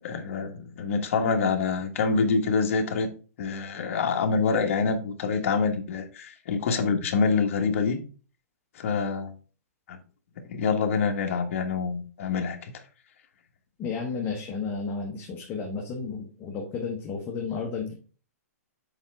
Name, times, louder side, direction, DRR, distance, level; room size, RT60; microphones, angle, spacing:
voice 1, 0.0-3.1 3.4-8.0 8.7-9.3 9.9-10.0 10.5-12.7, left 5 dB, 55° left, 1.4 m, -26 dB
voice 2, 13.8-17.9, left 5 dB, 20° left, 1.1 m, -32 dB
7.3 x 4.3 x 3.6 m
hypercardioid pair, 150°, 9 cm